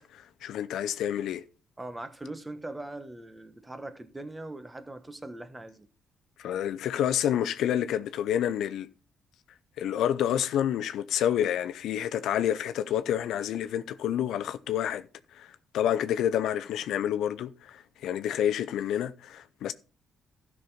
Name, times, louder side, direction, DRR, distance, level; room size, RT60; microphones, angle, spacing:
voice 1, 0.0-1.4 6.4-8.9 9.8-15.1 15.3-19.7, left 10 dB, 80° left, 0.6 m, -29 dB
voice 2, 1.8-5.9, right 2 dB, 15° right, 1.2 m, -41 dB
13.0 x 6.0 x 4.0 m
cardioid pair, 90°, 0 cm